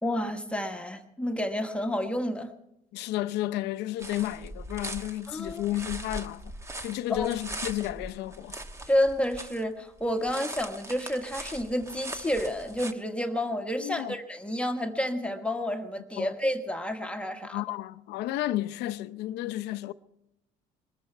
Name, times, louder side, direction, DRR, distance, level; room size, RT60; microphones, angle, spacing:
voice 1, 0.0-2.5 5.3-5.7 7.1-7.3 8.9-17.6, left 1 dB, 5° left, 1.4 m, -30 dB
voice 2, 2.9-6.4 6.8-8.6 13.8-14.2 16.2-16.3 17.5-19.9, left 14 dB, 85° left, 0.7 m, -32 dB
sound 1, 4.0-9.6 10.0-12.9, right 1 dB, 15° right, 1.1 m, -40 dB
22.0 x 14.0 x 4.5 m
cardioid pair, 110°, 17 cm